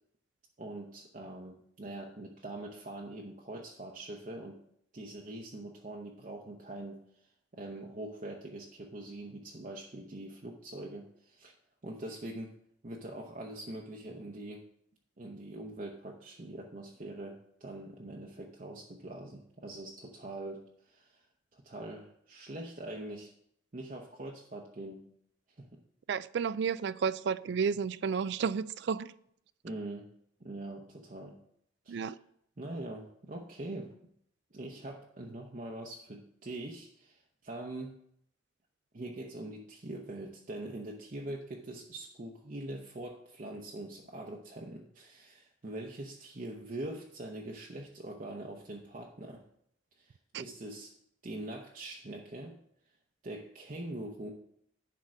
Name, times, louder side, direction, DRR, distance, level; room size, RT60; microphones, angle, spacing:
voice 1, 0.6-4.6 4.9-11.5 11.8-12.6 12.8-14.6 15.2-21.2 21.5-23.3 23.7-25.1 25.6-25.7 29.6-30.1 30.4-31.4 31.8-32.2 32.6-33.9 34.5-38.0 38.9-49.4 50.0-50.9 51.2-52.6 53.2-54.3, right 1 dB, 40° right, 0.7 m, -43 dB
voice 2, 26.1-29.1 31.9-32.1 50.3-50.4, right 6 dB, 60° right, 0.3 m, -32 dB
10.5 x 3.7 x 6.2 m
head